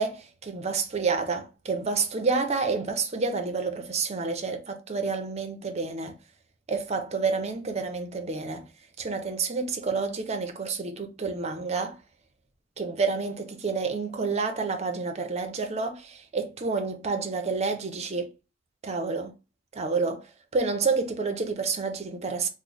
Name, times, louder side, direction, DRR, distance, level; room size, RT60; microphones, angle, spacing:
voice 1, 0.0-6.1 6.7-8.7 9.0-12.0 12.8-18.3 18.8-19.3 19.7-20.3 20.5-22.5, right 4 dB, 35° right, 0.5 m, -29 dB
3.0 x 2.0 x 4.0 m
head